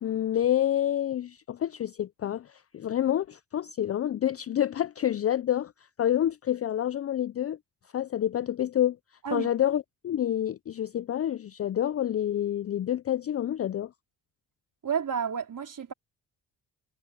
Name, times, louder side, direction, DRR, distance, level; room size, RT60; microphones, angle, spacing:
voice 1, 0.0-5.7 6.0-7.6 7.9-9.0 9.3-13.9, left 11 dB, 35° left, 0.5 m, -28 dB
voice 2, 14.8-15.9, right 7 dB, 50° right, 4.2 m, -30 dB
supercardioid pair, 55°, 41 cm